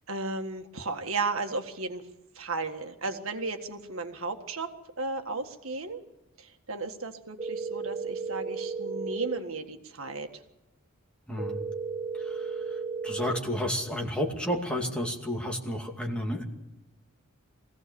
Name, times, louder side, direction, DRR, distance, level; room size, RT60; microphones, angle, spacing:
voice 1, 0.1-2.0 2.4-4.7 5.0-6.0 6.4-10.4, right 3 dB, 75° right, 5 dB, 1.8 m, -34 dB
sound 1, 7.4-9.4 11.4-13.4, right 5 dB, 30° right, 1.0 m, -34 dB
voice 2, 13.0-16.4, left 1 dB, 5° left, 0 dB, 2.5 m, -31 dB
23.0 x 16.5 x 7.0 m, 0.95 s
head